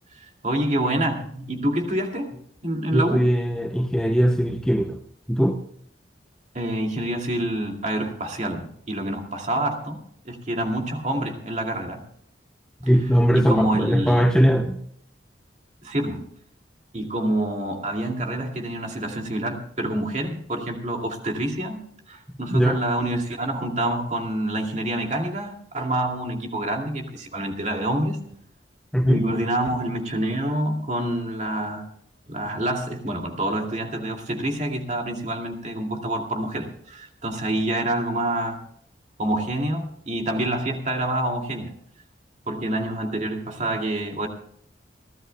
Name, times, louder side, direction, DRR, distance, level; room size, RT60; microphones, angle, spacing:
voice 1, 0.4-2.3 2.6-3.3 6.5-10.0 10.2-12.0 13.4-14.3 15.8-16.3 16.9-21.8 22.1-28.2 29.1-31.9 32.3-38.6 39.2-41.7 42.5-44.3, right 1 dB, 40° right, 2 dB, 2.4 m, -27 dB
voice 2, 2.9-5.0 5.3-5.6 12.8-14.8 22.5-22.8 28.9-29.3, equal, 5° left, 4 dB, 0.8 m, -20 dB
28.0 x 12.5 x 2.2 m, 0.66 s
head